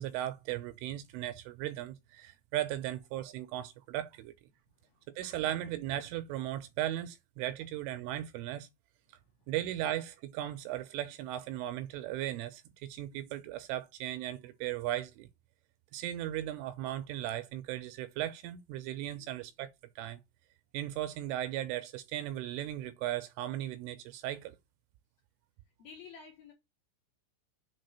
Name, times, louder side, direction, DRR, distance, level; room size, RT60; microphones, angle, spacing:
voice 1, 0.0-4.3 5.2-8.7 9.5-15.3 15.9-19.7 20.0-20.2 20.7-24.6, right 13 dB, 80° right, 3.0 m, -37 dB
voice 2, 19.1-19.4 25.8-26.5, left 6 dB, 70° left, 2.4 m, -52 dB
7.7 x 3.7 x 6.6 m
omnidirectional pair, 5.9 m